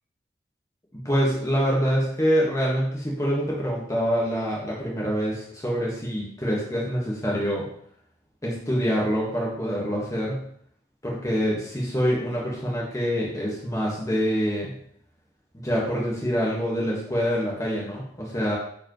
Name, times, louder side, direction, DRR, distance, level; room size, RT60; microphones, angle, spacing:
voice 1, 0.9-7.7 8.4-10.4 11.0-14.7 15.5-18.6, equal, 20° left, -5 dB, 1.6 m, -25 dB
9.7 x 4.9 x 3.1 m, 0.65 s
head